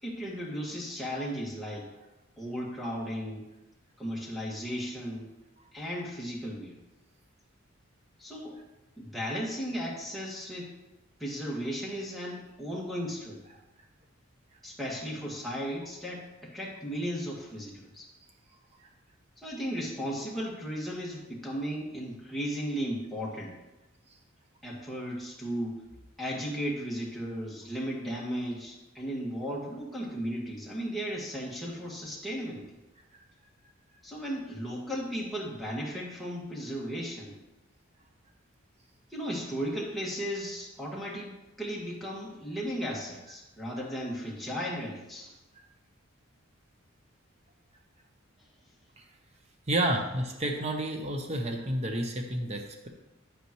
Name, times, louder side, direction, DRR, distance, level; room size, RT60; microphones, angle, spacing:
voice 1, 0.0-1.9 2.4-3.5 4.0-5.3 5.7-6.7 8.2-8.6 9.0-10.7 11.2-13.4 14.6-18.1 19.4-23.6 24.6-25.8 26.2-32.7 34.0-37.4 39.1-45.3, equal, ahead, -5 dB, 1.8 m, -35 dB
voice 2, 49.7-52.9, right 1 dB, 30° right, 3 dB, 0.8 m, -30 dB
10.0 x 8.4 x 3.1 m, 0.99 s
head